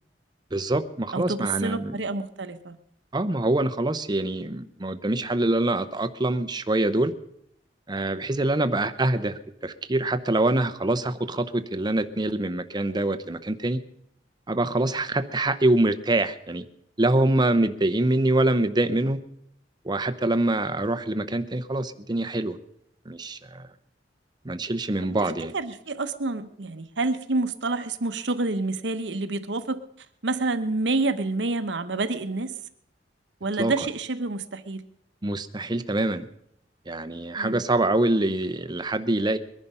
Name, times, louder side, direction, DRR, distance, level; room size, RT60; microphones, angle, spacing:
voice 1, 0.5-2.0 3.1-7.1 7.9-13.8 14.5-16.6 17.0-19.2 19.8-22.6 23.1-23.7 24.4-25.5 33.6-33.7 35.2-36.3 36.9-39.4, right 2 dB, 25° right, 10 dB, 0.7 m, -25 dB
voice 2, 1.1-2.8 25.2-29.8 30.2-32.6 33.4-34.8 37.3-37.6, right 3 dB, 70° right, 10 dB, 1.0 m, -28 dB
21.5 x 11.0 x 5.5 m, 0.75 s
head